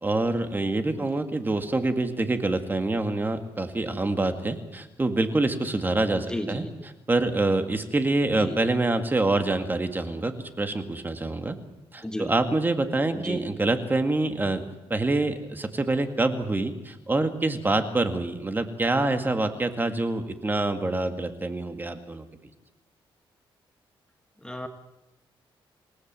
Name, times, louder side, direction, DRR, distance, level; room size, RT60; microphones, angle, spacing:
voice 1, 0.0-11.6 11.9-14.6 14.9-22.3, right 2 dB, 20° right, 7 dB, 2.1 m, -26 dB
voice 2, 6.3-6.7 8.4-8.7 12.0-12.3 13.1-13.4 24.4-24.7, left 1 dB, 10° left, 6 dB, 1.5 m, -33 dB
27.5 x 18.0 x 7.7 m, 1.0 s
cardioid pair, 115°, 9 cm